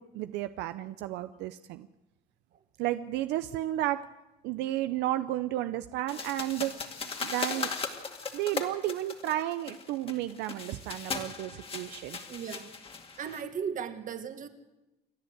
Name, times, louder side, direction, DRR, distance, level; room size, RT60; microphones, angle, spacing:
voice 1, 0.0-1.9 2.8-4.0 4.4-6.7 7.2-7.7 8.3-12.2, right 14 dB, 90° right, 11 dB, 0.6 m, -32 dB
sound 1, 6.1-13.4, left 5 dB, 35° left, 2.2 m, -38 dB
voice 2, 12.3-12.7 13.2-14.5, right 7 dB, 50° right, 8 dB, 1.8 m, -36 dB
28.5 x 11.0 x 8.1 m, 1.0 s
cardioid pair, 110°, 17 cm